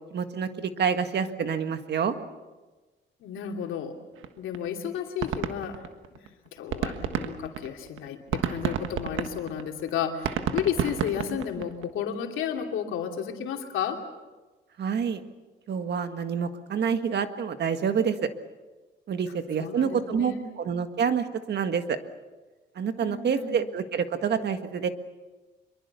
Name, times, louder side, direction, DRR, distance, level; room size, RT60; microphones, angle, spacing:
voice 1, 0.1-2.2 14.8-15.2 15.7-18.3 19.1-22.0 22.8-24.9, right 7 dB, 60° right, 9 dB, 1.8 m, -27 dB
voice 2, 3.2-3.9 4.4-5.8 6.1-6.2 6.5-14.0 19.6-20.4 23.0-23.6, left 8 dB, 85° left, 3 dB, 2.8 m, -32 dB
sound 1, 4.2-4.3 4.5-4.7 5.0-6.3 6.6-11.8, right 8 dB, 80° right, 1.5 m, -30 dB
24.5 x 23.0 x 6.9 m, 1.2 s
cardioid pair, 90°, 20 cm